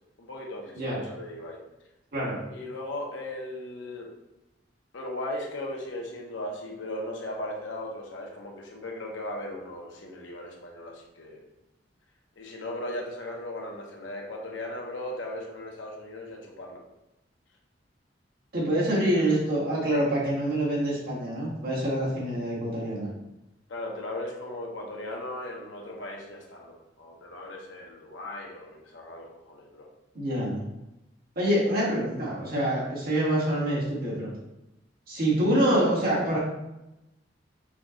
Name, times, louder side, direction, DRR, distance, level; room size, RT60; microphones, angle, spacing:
voice 1, 0.2-1.6 2.5-4.1 4.9-11.4 12.4-16.8 23.7-29.9, left 1 dB, 85° left, 0 dB, 0.9 m, -37 dB
voice 2, 18.5-23.1 30.1-30.6 31.3-34.3 35.1-36.4, right 1 dB, 55° right, -6 dB, 1.6 m, -26 dB
5.8 x 2.3 x 3.7 m, 0.93 s
head